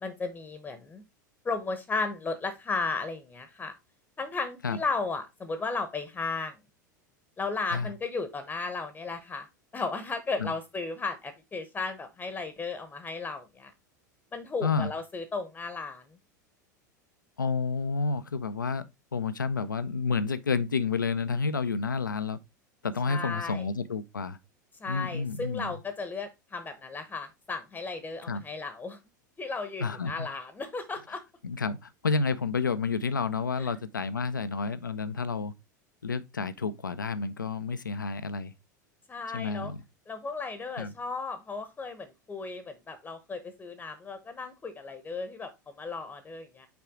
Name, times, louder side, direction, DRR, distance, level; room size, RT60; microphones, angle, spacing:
voice 1, 0.0-1.0 1.4-3.7 4.2-6.6 7.4-9.5 9.7-13.7 14.3-16.0 23.1-23.6 24.8-29.0 29.4-31.2 33.6-33.7 39.1-39.7 40.1-46.7, left 4 dB, 15° left, 0.9 m, -35 dB
voice 2, 14.6-14.9 17.4-18.9 19.1-22.4 22.8-24.4 24.8-25.8 28.3-28.4 29.8-30.3 31.4-35.5 36.0-38.5 39.3-39.8 40.8-40.9, left 4 dB, 85° left, 0.6 m, -30 dB
5.9 x 4.8 x 3.6 m
figure-of-eight pair, 85°, 10 cm